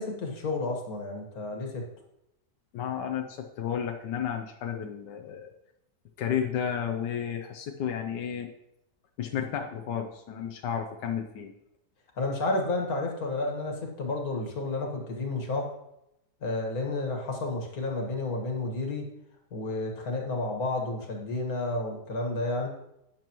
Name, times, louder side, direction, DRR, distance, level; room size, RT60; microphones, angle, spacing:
voice 1, 0.0-1.8 12.2-15.7 16.4-19.0 19.5-22.7, left 2 dB, 60° left, 1 dB, 2.2 m, -31 dB
voice 2, 2.7-5.5 6.2-8.5 9.2-11.5, left 8 dB, 90° left, 4 dB, 1.4 m, -32 dB
11.5 x 9.1 x 3.0 m, 0.82 s
omnidirectional pair, 1.8 m